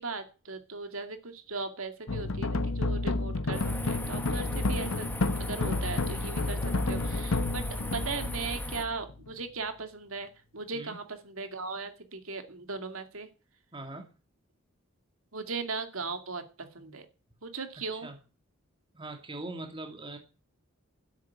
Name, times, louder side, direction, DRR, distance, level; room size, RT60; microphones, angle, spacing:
voice 1, 0.0-5.1 5.4-6.6 6.9-13.3 15.3-17.1 17.4-18.1, right 4 dB, 80° right, 7 dB, 2.4 m, -38 dB
sound 1, 2.1-9.3, left 2 dB, 85° left, 1.0 m, -31 dB
sound 2, 3.5-8.8, left 1 dB, 10° left, 1.7 m, -39 dB
voice 2, 13.7-14.1 17.9-18.2 18.9-20.2, right 2 dB, 25° right, 4 dB, 2.3 m, -41 dB
12.5 x 8.4 x 8.6 m, 0.34 s
head